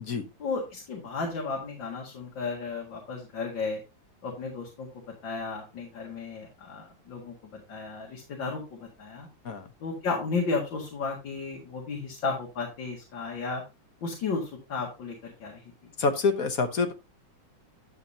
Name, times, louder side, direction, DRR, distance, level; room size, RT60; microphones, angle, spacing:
voice 1, 0.4-3.8 4.2-4.9 5.2-9.3 9.8-13.6 14.0-15.6, left 4 dB, 70° left, -2 dB, 2.6 m, -33 dB
voice 2, 16.0-16.9, left 4 dB, 55° left, 7 dB, 1.2 m, -26 dB
10.5 x 7.0 x 2.8 m, 0.26 s
omnidirectional pair, 2.1 m